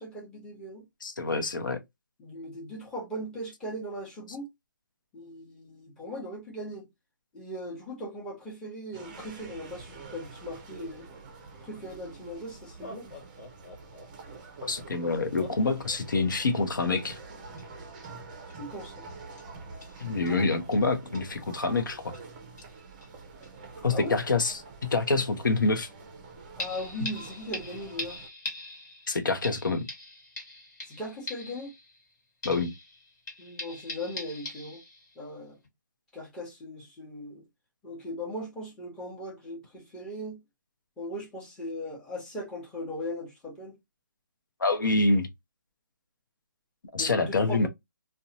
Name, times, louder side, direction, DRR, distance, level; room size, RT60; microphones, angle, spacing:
voice 1, 0.0-0.8 2.2-4.5 5.1-6.9 7.3-11.1 11.6-13.1 18.5-19.1 23.9-24.2 26.6-28.2 30.9-31.7 33.4-34.8 35.2-35.6 36.1-37.4 37.8-40.4 41.0-43.8 47.0-47.7, equal, 10° left, 0.9 m, -39 dB
voice 2, 1.0-1.8 14.6-17.2 20.0-22.1 23.8-24.6 24.9-25.9 29.1-29.9 32.4-32.7 44.6-45.3 46.9-47.7, left 3 dB, 80° left, 0.7 m, -26 dB
sound 1, 8.9-28.3, right 4 dB, 25° right, 0.5 m, -46 dB
Laughter, 12.0-12.1 12.7-14.4 15.4-16.6, left 2 dB, 40° left, 0.7 m, -46 dB
sound 2, 17.1-17.2 17.6-17.7 18.0-18.1 18.5-18.6 19.4-19.5 19.8-20.0 20.3-20.4 20.7-20.8 21.1-21.3 22.1-22.3 22.6-23.1 23.4-23.5 23.9-24.0 26.6-32.1 32.4-35.2 35.6-35.7, left 2 dB, 60° left, 1.3 m, -42 dB
2.6 x 2.1 x 2.7 m
hypercardioid pair, 155°, 11 cm